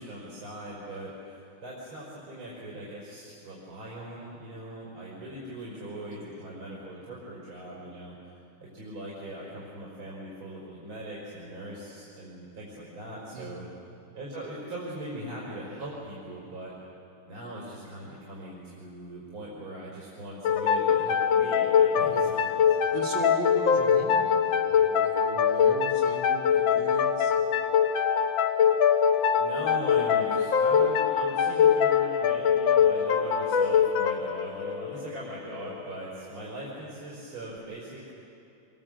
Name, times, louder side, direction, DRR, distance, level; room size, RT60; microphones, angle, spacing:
voice 1, 0.0-8.2 8.6-13.6 14.1-16.7 17.3-22.4 22.7-22.8 29.4-38.1, right 1 dB, 90° right, -6 dB, 5.6 m, -40 dB
voice 2, 6.1-6.4 13.3-13.6 22.1-22.5 22.9-27.5, right 3 dB, 60° right, -2 dB, 3.7 m, -38 dB
sound 1, 20.4-35.8, left 7 dB, 70° left, 1.8 m, -23 dB
26.0 x 22.5 x 7.7 m, 2.7 s
omnidirectional pair, 2.3 m